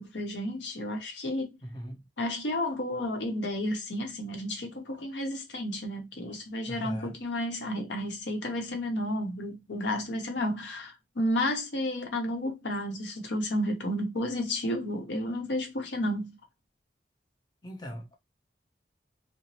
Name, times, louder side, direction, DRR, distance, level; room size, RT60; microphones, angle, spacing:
voice 1, 0.0-1.6 2.2-16.4, left 1 dB, 85° left, 0.8 m, -32 dB
voice 2, 1.6-2.0 6.7-7.2 17.6-18.1, equal, 25° left, 0.7 m, -39 dB
2.9 x 2.0 x 2.6 m
head